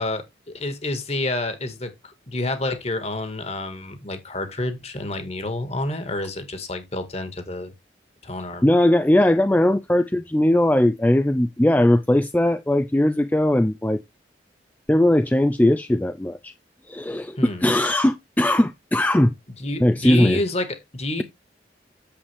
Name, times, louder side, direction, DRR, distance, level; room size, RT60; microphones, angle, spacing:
voice 1, 0.0-7.7 8.2-8.7 17.4-17.7 19.6-21.2, left 2 dB, 35° left, 1.8 m, -29 dB
voice 2, 8.6-14.0 14.9-16.5 16.9-19.3 19.8-20.4, left 1 dB, 10° left, 0.4 m, -19 dB
8.6 x 7.3 x 3.4 m
head